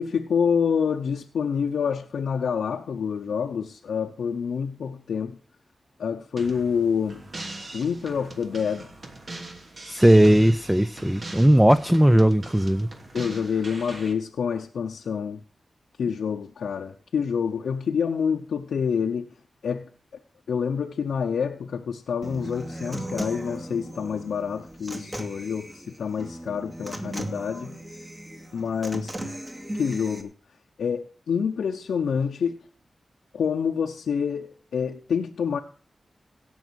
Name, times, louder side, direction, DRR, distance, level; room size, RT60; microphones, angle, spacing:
voice 1, 0.0-5.4 6.0-7.2 7.7-8.9 13.1-15.4 16.0-19.3 19.6-19.9 20.5-27.7 28.5-29.1 29.8-30.3 30.8-32.6 33.3-35.6, left 6 dB, 90° left, 0.7 m, -27 dB
sound 1, 6.4-14.1, right 2 dB, 60° right, 2.7 m, -41 dB
voice 2, 9.9-12.9, right 1 dB, 10° right, 0.6 m, -18 dB
Human voice / Acoustic guitar, 22.2-30.2, right 1 dB, 25° right, 2.6 m, -37 dB
16.5 x 6.2 x 6.3 m
cardioid pair, 45°, 0 cm